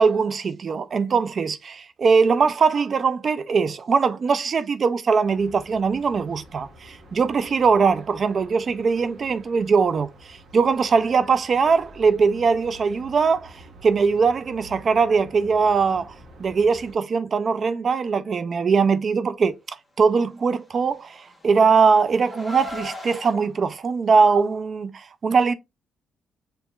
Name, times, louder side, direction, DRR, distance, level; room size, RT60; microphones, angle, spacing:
voice 1, 0.0-13.5 13.8-16.1 16.4-19.5 20.0-25.5, right 5 dB, 50° right, 0.4 m, -21 dB
sound 1, 5.2-16.9, right 1 dB, 65° right, 1.5 m, -48 dB
Car, 20.8-23.3, left 1 dB, 5° left, 1.6 m, -38 dB
5.3 x 2.9 x 2.3 m
supercardioid pair, 60°, 0 cm